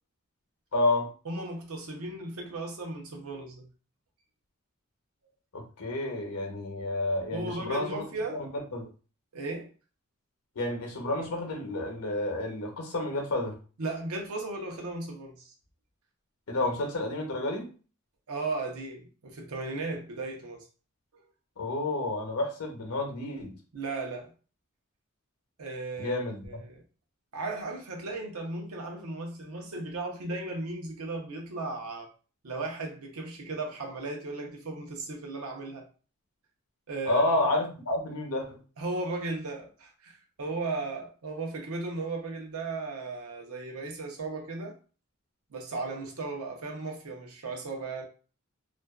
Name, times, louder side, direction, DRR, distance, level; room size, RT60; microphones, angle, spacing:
voice 1, 0.7-1.1 5.5-8.0 8.4-8.9 10.6-13.6 16.5-17.7 21.6-23.6 26.0-26.6 37.1-38.6, left 2 dB, 90° left, 0.7 m, -30 dB
voice 2, 1.2-3.7 7.3-8.4 9.3-9.7 13.8-15.5 18.3-20.6 21.1-21.2 23.7-24.3 25.6-26.2 26.4-26.8 27.3-32.1 32.4-35.8 36.9-37.2 38.8-44.7 45.5-48.0, right 3 dB, 80° right, 0.6 m, -36 dB
2.4 x 2.2 x 2.3 m
head